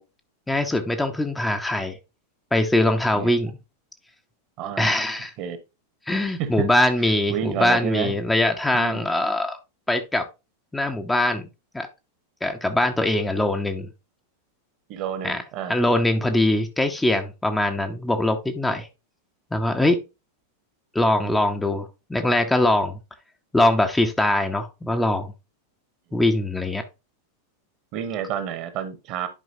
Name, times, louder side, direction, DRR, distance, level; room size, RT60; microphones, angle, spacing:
voice 1, 0.5-2.0 2.5-3.6 4.8-5.3 6.1-9.6 9.9-10.3 10.7-11.5 11.7-11.9 12.4-13.9 15.2-15.4 15.7-18.9 19.5-20.0 20.9-23.0 23.5-25.3 26.1-26.8, left 1 dB, 5° left, 0.8 m, -22 dB
voice 2, 4.6-4.9 5.4-5.6 6.4-6.7 7.3-8.1 8.7-9.0 14.9-15.8 26.1-26.2 27.9-29.3, right 9 dB, 40° right, 1.3 m, -29 dB
11.0 x 4.9 x 2.8 m
figure-of-eight pair, 90°, 0 cm